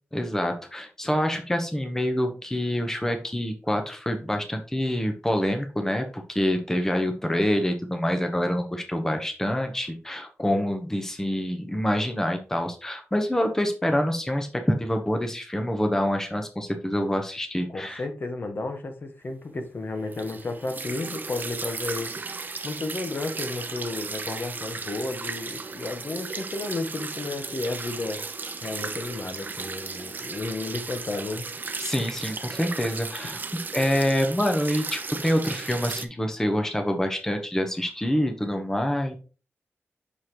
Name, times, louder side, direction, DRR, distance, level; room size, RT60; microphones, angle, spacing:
voice 1, 0.1-18.0 31.8-33.4 33.7-39.2, equal, 10° left, 5 dB, 0.9 m, -26 dB
voice 2, 17.7-28.2 28.6-31.5, left 2 dB, 50° left, 6 dB, 1.1 m, -33 dB
sound 1, 20.1-36.1, right 4 dB, 45° right, 0.5 m, -35 dB
6.2 x 5.6 x 3.0 m, 0.35 s
wide cardioid pair, 145°, 5 cm